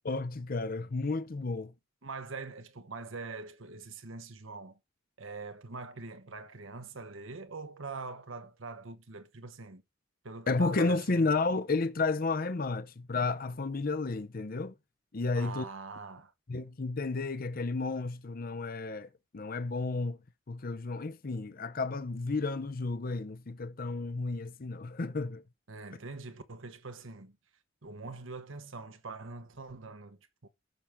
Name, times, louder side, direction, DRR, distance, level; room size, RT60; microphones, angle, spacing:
voice 1, 0.0-1.7 10.5-14.7 15.1-15.6 16.5-20.2 20.5-25.4, left 3 dB, 45° left, 0.6 m, -32 dB
voice 2, 2.0-4.8 5.2-9.8 10.2-11.3 15.3-16.3 25.7-27.4 27.8-30.5, right 4 dB, 80° right, 1.2 m, -43 dB
14.5 x 6.0 x 3.5 m
head